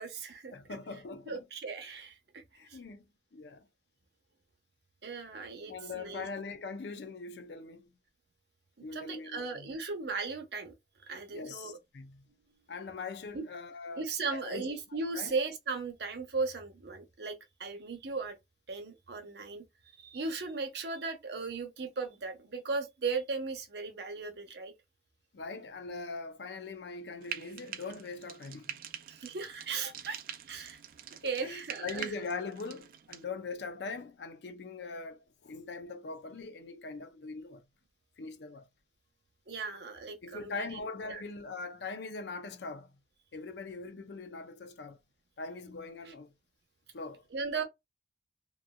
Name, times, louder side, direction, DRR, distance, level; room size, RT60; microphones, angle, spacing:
voice 1, 0.0-0.5 1.3-2.4 2.7-2.8 5.0-6.3 8.9-10.7 11.1-11.8 13.3-13.4 14.0-17.3 17.6-18.3 18.7-19.6 20.0-24.7 29.1-30.8 31.2-32.1 39.5-40.7 41.1-41.2 46.1-46.2 47.3-47.6, right 4 dB, 70° right, 0.8 m, -37 dB
voice 2, 0.5-1.4 2.6-3.7 5.7-7.9 8.8-9.8 11.3-12.2 12.7-14.7 15.1-15.3 25.3-28.8 31.2-37.6 38.2-38.7 40.2-42.9 43.3-45.0 45.4-46.3 46.9-47.2, left 4 dB, 75° left, 0.5 m, -42 dB
Frying (food), 27.2-33.2, right 9 dB, 50° right, 0.3 m, -45 dB
3.0 x 2.5 x 2.3 m
head